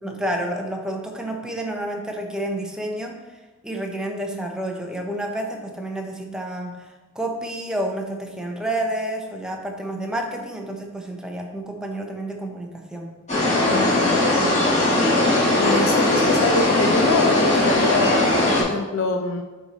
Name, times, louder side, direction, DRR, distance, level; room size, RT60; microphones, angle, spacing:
voice 1, 0.0-3.2 3.6-6.8 7.1-13.1 15.1-15.3, right 1 dB, 5° right, 1 dB, 0.7 m, -29 dB
sound 1, 13.3-18.6, left 1 dB, 35° left, 2.1 m, -19 dB
voice 2, 13.7-14.3 15.6-19.4, left 3 dB, 70° left, 4 dB, 0.5 m, -25 dB
6.7 x 4.5 x 4.2 m, 1.2 s
head